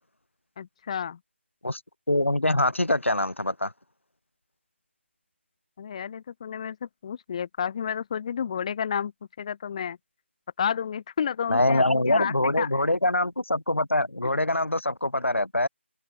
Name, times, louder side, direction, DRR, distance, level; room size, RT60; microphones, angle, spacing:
voice 1, 0.6-1.2 5.8-9.1 9.4-10.0 10.6-12.7, left 8 dB, 30° left, 0.8 m, -31 dB
voice 2, 2.1-3.7 11.5-15.7, left 1 dB, 85° left, 2.2 m, -24 dB
open air
figure-of-eight pair, 155°, 7 cm